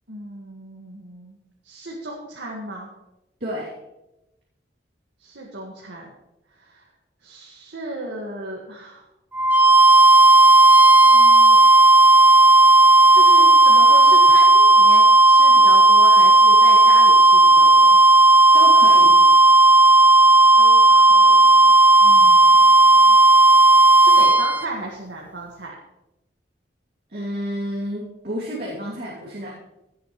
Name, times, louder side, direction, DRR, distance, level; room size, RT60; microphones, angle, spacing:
voice 1, 0.1-1.4 1.6-2.9 5.2-6.1 6.6-6.8 7.2-9.0 11.0-11.6 13.1-18.0 20.6-21.5 22.0-22.7 23.1-23.2 24.0-25.7, right 1 dB, 90° right, -2 dB, 1.8 m, -35 dB
sound 1, 9.3-24.6, right 2 dB, 10° right, 0.5 m, -12 dB
voice 2, 18.5-19.2 27.1-29.5, equal, 60° right, -7 dB, 2.8 m, -30 dB
17.0 x 8.5 x 3.2 m, 0.92 s
head